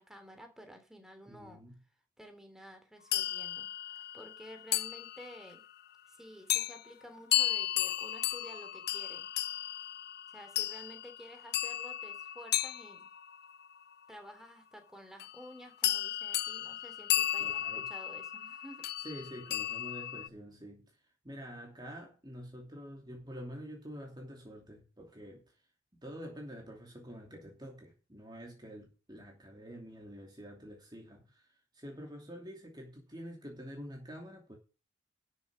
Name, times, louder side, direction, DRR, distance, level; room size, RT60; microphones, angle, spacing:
voice 1, 0.0-1.6 2.2-5.6 6.1-9.3 10.3-13.1 14.1-18.9, equal, ahead, 3.3 m, -52 dB
voice 2, 1.3-1.8 17.4-17.9 19.0-21.0 21.2-25.6 25.9-34.6, equal, 20° right, 2.7 m, -47 dB
sound 1, 3.1-5.6 6.5-6.8 7.3-13.7 15.2-15.5 15.8-20.3, left 12 dB, 50° left, 0.6 m, -34 dB
12.5 x 7.0 x 6.5 m
head